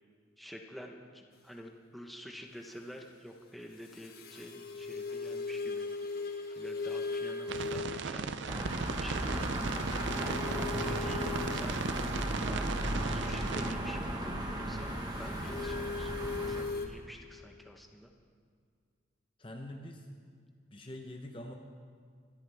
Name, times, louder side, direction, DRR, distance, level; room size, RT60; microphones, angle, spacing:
voice 1, 0.4-6.1 6.5-10.2 10.8-11.9 12.5-12.8 13.1-18.1, equal, ahead, 1 dB, 1.0 m, -48 dB
sound 1, 3.8-8.1 8.7-12.4 14.9-16.9, left 4 dB, 45° left, 1.4 m, -39 dB
sound 2, 7.5-13.7, right 4 dB, 60° right, 0.5 m, -37 dB
sound 3, 8.5-16.6, right 1 dB, 20° right, 1.4 m, -35 dB
voice 2, 19.4-20.1 20.7-21.5, left 1 dB, 25° left, 3 dB, 0.8 m, -44 dB
24.5 x 13.0 x 3.5 m, 2.1 s
head